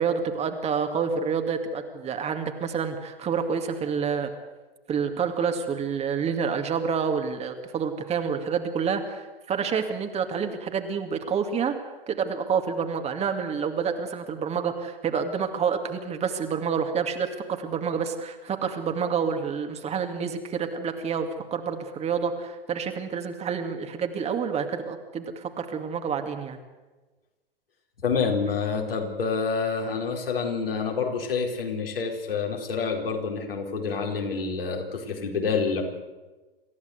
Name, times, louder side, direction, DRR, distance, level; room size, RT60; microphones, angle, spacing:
voice 1, 0.0-4.3 4.9-11.8 12.1-26.6, right 6 dB, 20° right, 6 dB, 2.3 m, -28 dB
voice 2, 28.0-35.8, left 5 dB, 70° left, 1 dB, 4.6 m, -27 dB
27.0 x 14.5 x 8.1 m, 1.2 s
figure-of-eight pair, 100°, 29 cm